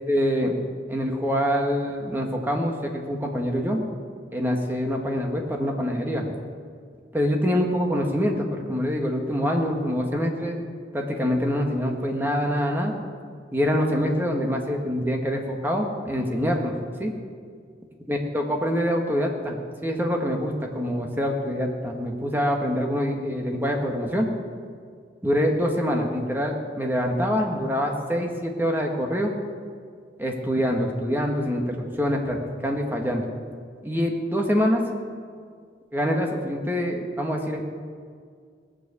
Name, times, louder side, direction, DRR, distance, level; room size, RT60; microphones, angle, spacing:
voice 1, 0.1-0.6 0.9-3.9 4.3-6.3 7.1-10.6 10.9-12.9 13.5-16.7 17.0-17.1 18.1-19.6 19.8-24.3 25.2-29.3 30.2-33.2 33.8-34.8 35.9-37.7, equal, 10° right, 1 dB, 1.5 m, -25 dB
18.5 x 6.9 x 8.5 m, 2.1 s
head